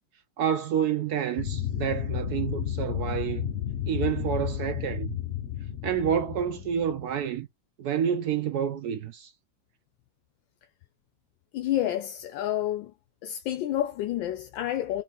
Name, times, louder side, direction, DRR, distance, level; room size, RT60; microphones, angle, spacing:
voice 1, 0.4-3.5 3.9-5.1 5.8-7.5 7.8-9.3, right 8 dB, 70° right, 1.0 m, -28 dB
sound 1, 1.4-7.2, left 10 dB, 45° left, 1.1 m, -32 dB
voice 2, 11.5-12.9 13.2-15.0, left 12 dB, 80° left, 1.4 m, -29 dB
4.2 x 3.1 x 3.9 m
omnidirectional pair, 2.1 m